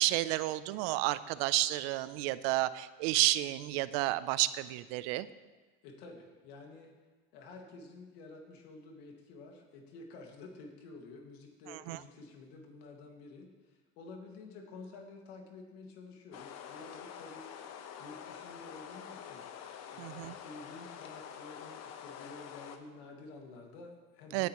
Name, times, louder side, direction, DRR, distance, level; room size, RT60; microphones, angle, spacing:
voice 1, 0.0-5.3 11.7-12.0 20.0-20.3 24.3-24.5, right 17 dB, 85° right, 16 dB, 0.6 m, -31 dB
voice 2, 5.8-6.9 7.3-17.5 18.0-19.5 19.9-24.5, left 3 dB, 90° left, 2 dB, 2.0 m, -50 dB
sound 1, 16.3-22.8, left 8 dB, 60° left, 1.1 m, -47 dB
17.0 x 9.2 x 3.0 m, 1.3 s
supercardioid pair, 100°, 30 cm